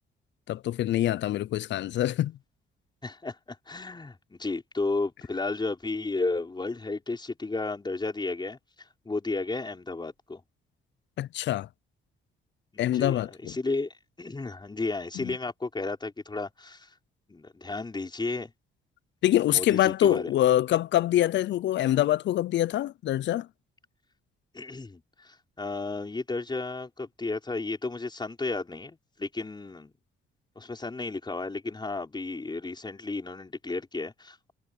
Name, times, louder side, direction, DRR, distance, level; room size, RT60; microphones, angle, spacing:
voice 1, 0.5-2.4 11.2-11.7 12.8-13.5 15.2-15.3 19.2-23.5, left 13 dB, 65° left, 0.5 m, -25 dB
voice 2, 3.0-10.4 12.7-16.9 17.3-18.5 19.5-20.3 24.5-29.9 30.5-34.5, left 3 dB, 20° left, 5.2 m, -33 dB
cardioid pair, 90°, 20 cm